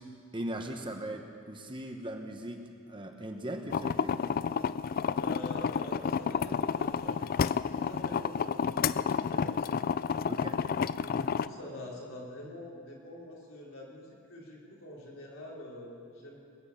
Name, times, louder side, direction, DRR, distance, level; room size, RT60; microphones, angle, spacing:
voice 1, 0.3-2.6 2.9-4.1 10.3-10.6, right 1 dB, 20° right, 4 dB, 0.9 m, -39 dB
sound 1, 3.7-11.5, left 6 dB, 45° left, 0.3 m, -30 dB
voice 2, 5.0-7.3 7.7-10.1 11.0-16.4, left 1 dB, 65° left, -3 dB, 3.8 m, -45 dB
20.5 x 9.3 x 7.3 m, 2.5 s
head